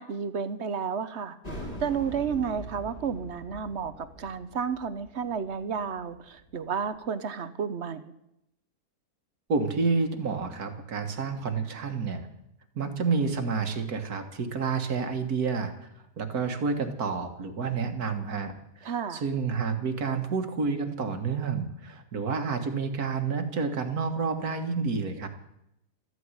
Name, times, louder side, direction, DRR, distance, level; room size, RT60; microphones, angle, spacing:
voice 1, 0.0-1.4 1.8-8.1 18.8-19.2, right 6 dB, 50° right, 12 dB, 1.1 m, -31 dB
sound 1, 1.4-6.8, right 1 dB, 25° left, 3.1 m, -43 dB
voice 2, 9.5-12.3 12.8-15.7 16.2-25.3, right 4 dB, 70° right, 7 dB, 2.1 m, -29 dB
14.0 x 9.7 x 9.7 m, 0.81 s
omnidirectional pair, 1.7 m